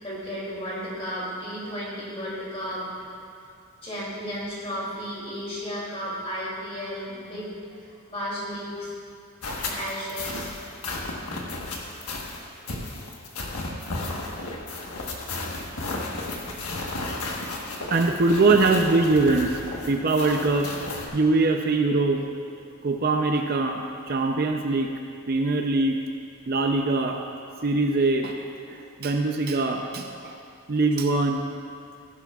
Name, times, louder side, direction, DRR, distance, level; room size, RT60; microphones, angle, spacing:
voice 1, 0.0-2.9 3.8-8.9 9.6-10.5, equal, 25° left, -6 dB, 2.8 m, -34 dB
sound 1, 9.4-21.1, left 2 dB, 80° left, 1.3 m, -33 dB
voice 2, 17.9-19.5 19.8-20.7 21.1-22.3 22.8-24.9 25.3-26.0 26.5-27.2 27.6-30.4 30.7-31.5, right 3 dB, 45° right, 3 dB, 0.5 m, -23 dB
15.5 x 10.5 x 2.4 m, 2.4 s
head